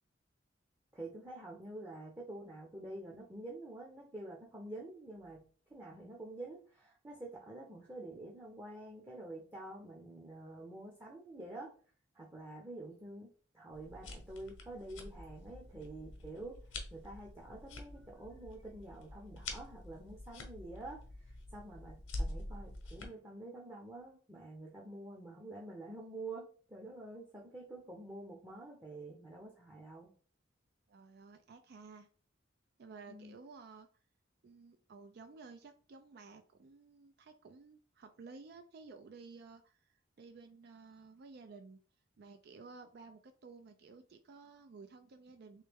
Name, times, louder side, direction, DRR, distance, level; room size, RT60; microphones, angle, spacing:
voice 1, 0.9-11.7 12.1-13.3 13.5-16.6 16.9-21.0 21.3-30.1 33.1-33.4, right 2 dB, 15° right, -2 dB, 0.7 m, -48 dB
sound 1, 13.7-23.1, left 2 dB, 70° left, 0.9 m, -46 dB
voice 2, 30.9-32.1 32.8-33.9 34.4-41.8 42.2-45.6, right 4 dB, 55° right, 7 dB, 0.4 m, -54 dB
3.2 x 3.2 x 3.4 m, 0.41 s
head